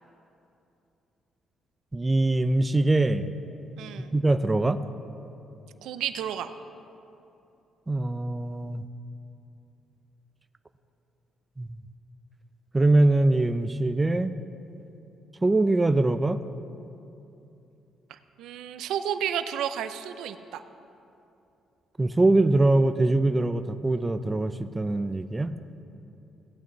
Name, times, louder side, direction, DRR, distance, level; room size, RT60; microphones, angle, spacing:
voice 1, 1.9-3.3 4.0-4.8 7.9-8.8 11.6-11.8 12.7-14.3 15.4-16.4 22.0-25.5, right 2 dB, 20° right, 10 dB, 0.4 m, -23 dB
voice 2, 3.8-4.1 5.8-6.5 18.1-20.6, right 9 dB, 85° right, 10 dB, 0.5 m, -32 dB
17.5 x 8.7 x 3.1 m, 2.8 s
cardioid pair, 90°, 0 cm